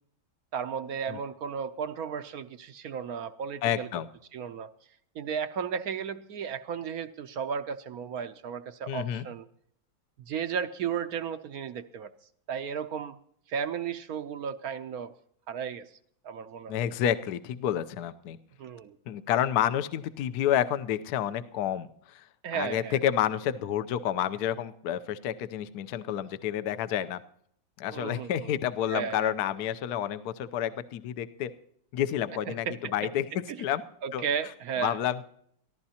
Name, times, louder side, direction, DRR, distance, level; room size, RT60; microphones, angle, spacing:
voice 1, 0.5-3.9 4.3-4.7 5.1-9.5 10.3-12.1 12.5-13.2 13.5-15.1 15.5-15.9 16.2-16.7 18.6-19.0 22.4-23.0 27.9-28.5 28.9-29.3 32.5-33.1 33.5-33.6 34.0-35.0, right 7 dB, 65° right, 11 dB, 1.0 m, -34 dB
voice 2, 3.6-4.1 8.9-9.3 16.7-18.4 19.1-22.3 22.5-27.2 27.8-31.5 31.9-33.8 34.1-34.2 34.8-35.2, left 10 dB, 65° left, 13 dB, 1.1 m, -29 dB
23.0 x 14.5 x 2.9 m, 0.66 s
omnidirectional pair, 2.0 m